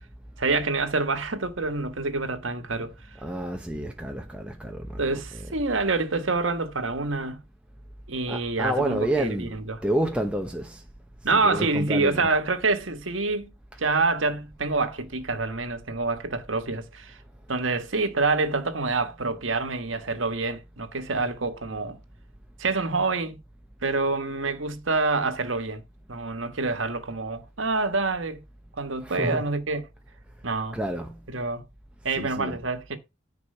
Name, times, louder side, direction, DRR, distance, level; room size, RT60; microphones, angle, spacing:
voice 1, 0.4-2.9 5.0-7.4 8.1-9.8 11.2-13.5 13.8-17.2 17.5-22.0 22.6-23.4 23.8-25.8 26.1-28.4 28.8-29.9 30.4-30.8 31.3-31.6 32.0-33.0, right 3 dB, 80° right, 1.3 m, -27 dB
voice 2, 3.2-5.1 5.3-5.5 8.3-9.6 9.8-10.8 11.3-12.3 29.0-29.4 30.7-31.2 32.1-32.6, right 1 dB, 5° right, 0.9 m, -29 dB
10.0 x 4.8 x 5.5 m
head